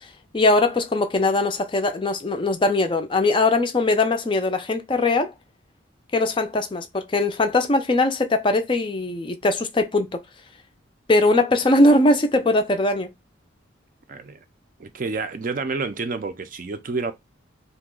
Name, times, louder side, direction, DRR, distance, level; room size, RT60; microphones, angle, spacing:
voice 1, 0.3-5.3 6.1-10.2 11.1-13.1, left 2 dB, 25° left, 0.4 m, -20 dB
voice 2, 14.1-14.4 14.8-17.1, right 4 dB, 45° right, 0.4 m, -29 dB
2.9 x 2.1 x 3.7 m
head